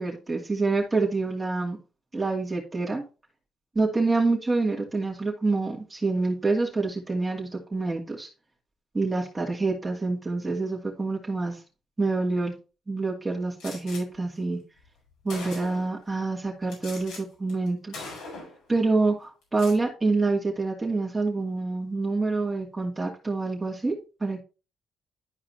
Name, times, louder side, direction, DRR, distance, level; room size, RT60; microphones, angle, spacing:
voice 1, 0.0-1.8 2.1-3.0 3.7-8.3 8.9-11.6 12.0-12.5 12.9-14.6 15.2-18.0 18.7-24.4, right 3 dB, 20° right, -2 dB, 2.4 m, -27 dB
Gunshot gunfire, 13.6-14.0 14.8-14.9 15.3-16.0 16.7-17.2 17.5-17.7 17.9-18.6 19.4-19.8, left 3 dB, 80° left, 5.0 m, -40 dB
12.0 x 4.8 x 2.9 m, 0.32 s
cardioid pair, 90°, 0 cm